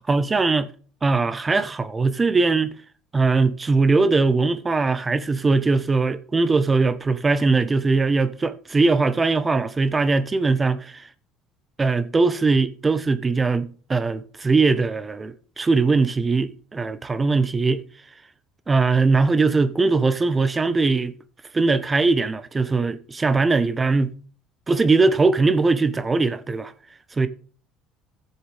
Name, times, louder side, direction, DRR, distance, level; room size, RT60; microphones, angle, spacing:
voice 1, 0.1-0.7 1.0-2.7 3.1-11.1 11.8-17.8 18.7-21.1 21.5-24.1 24.7-26.7 27.2-27.3, right 3 dB, 25° right, 1.1 m, -20 dB
15.5 x 7.0 x 3.5 m
supercardioid pair, 80°, 0 cm